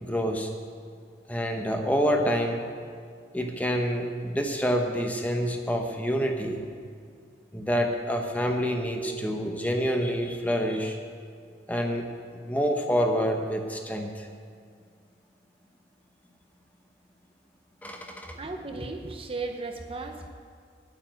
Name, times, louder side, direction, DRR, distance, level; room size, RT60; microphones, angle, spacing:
voice 1, 0.0-0.5 1.3-2.7 3.3-6.6 7.5-11.0 11.7-12.1 12.5-14.3 17.8-18.3, equal, 10° left, 3 dB, 0.9 m, -27 dB
voice 2, 18.3-20.3, right 3 dB, 30° right, 4 dB, 0.8 m, -35 dB
8.8 x 8.5 x 9.2 m, 2.2 s
head